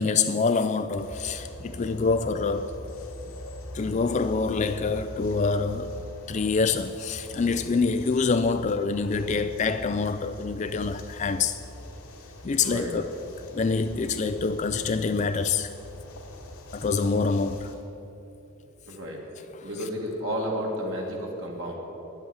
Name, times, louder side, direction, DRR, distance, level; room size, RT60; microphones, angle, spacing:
voice 1, 0.0-2.8 3.7-6.0 6.3-11.6 12.4-13.2 13.5-15.7 16.7-17.7, left 4 dB, 30° left, 0.3 m, -26 dB
sound 1, 1.0-17.8, left 1 dB, 85° left, 2.4 m, -42 dB
voice 2, 12.6-13.0 13.9-14.0 18.9-19.2 19.6-21.7, equal, 55° right, 2.0 m, -32 dB
10.5 x 8.0 x 9.4 m
head